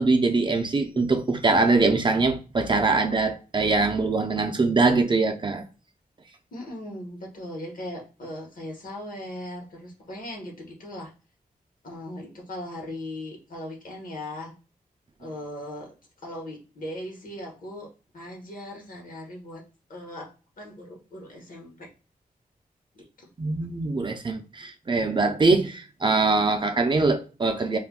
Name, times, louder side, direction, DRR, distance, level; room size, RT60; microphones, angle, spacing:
voice 1, 0.0-5.6 23.4-27.8, right 3 dB, 30° right, 0.5 m, -23 dB
voice 2, 6.5-11.1 11.8-14.5 15.2-16.0 16.2-19.6 19.9-20.3 20.6-21.9 22.9-23.3, left 1 dB, 65° left, 1.1 m, -38 dB
2.4 x 2.2 x 3.6 m
wide cardioid pair, 125°, 15 cm